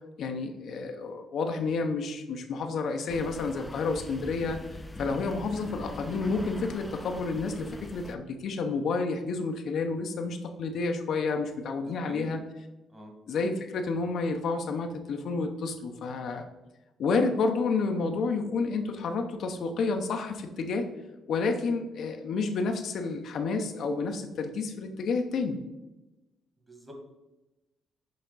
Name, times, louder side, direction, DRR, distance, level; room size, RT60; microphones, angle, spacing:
voice 1, 0.2-12.4 13.3-16.5 17.0-20.9 21.3-25.6, left 4 dB, 70° left, 5 dB, 0.7 m, -30 dB
sound 1, 3.1-8.1, left 1 dB, 10° left, 0.5 m, -42 dB
voice 2, 11.8-12.4 12.9-13.1 26.6-26.9, equal, 15° right, 2 dB, 1.7 m, -44 dB
6.6 x 4.9 x 4.0 m, 1.0 s
cardioid pair, 90°, 0 cm